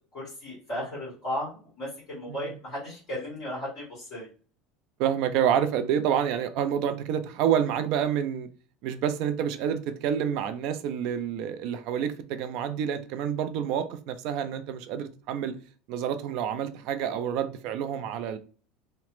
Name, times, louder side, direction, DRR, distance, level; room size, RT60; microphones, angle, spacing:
voice 1, 0.1-4.3, equal, 35° left, 1.4 m, -35 dB
voice 2, 5.0-8.5 8.8-15.6 15.9-18.4, right 9 dB, 50° right, 0.3 m, -28 dB
2.9 x 2.0 x 3.0 m
cardioid pair, 175°, 0 cm